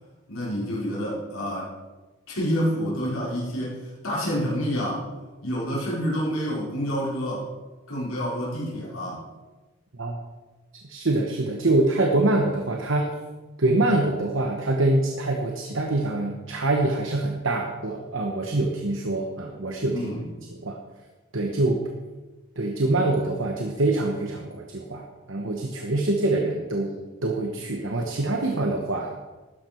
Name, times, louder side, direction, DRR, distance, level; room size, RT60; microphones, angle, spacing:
voice 1, 0.3-1.7 2.3-5.1 5.4-7.5 7.9-9.2 19.9-20.3, equal, 75° left, -7 dB, 4.6 m, -28 dB
voice 2, 10.9-13.1 13.6-20.0 20.5-20.8 21.3-21.8 22.6-26.9 27.2-29.2, right 2 dB, 60° right, 2 dB, 1.1 m, -25 dB
12.5 x 10.5 x 4.5 m, 1.2 s
head